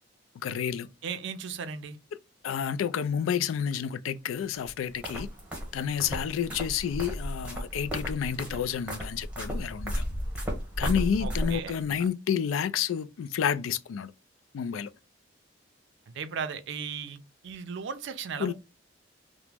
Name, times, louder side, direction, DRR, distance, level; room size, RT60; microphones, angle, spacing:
voice 1, 0.4-0.9 2.4-5.3 5.7-10.1 10.8-14.1 14.5-14.9 18.4-18.5, left 8 dB, 80° left, 0.3 m, -30 dB
voice 2, 1.0-2.0 11.2-11.8 16.1-18.5, right 6 dB, 65° right, 0.4 m, -36 dB
sound 1, 4.5-11.8, equal, 5° right, 0.9 m, -34 dB
2.9 x 2.0 x 3.4 m
head